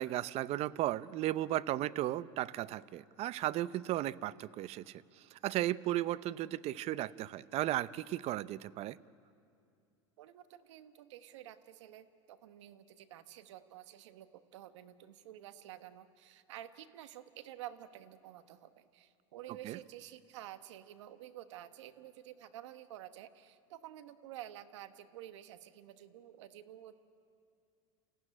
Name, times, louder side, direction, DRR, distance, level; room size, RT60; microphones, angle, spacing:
voice 1, 0.0-5.0 5.3-9.0 19.6-19.8, right 15 dB, 45° right, 18 dB, 0.6 m, -35 dB
voice 2, 10.2-27.0, right 12 dB, 75° right, 10 dB, 1.3 m, -50 dB
28.0 x 15.0 x 10.0 m, 2.4 s
hypercardioid pair, 110°, 15 cm